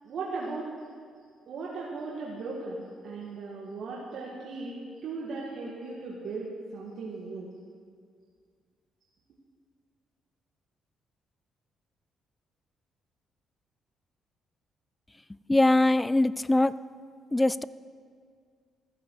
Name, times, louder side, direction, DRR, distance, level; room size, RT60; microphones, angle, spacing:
voice 1, 0.0-0.7 1.5-7.5, right 3 dB, 65° right, -5 dB, 2.1 m, -37 dB
voice 2, 15.5-16.8 17.3-17.6, left 2 dB, 15° left, 18 dB, 0.3 m, -22 dB
14.5 x 14.5 x 4.9 m, 2.1 s
cardioid pair, 90°, 0 cm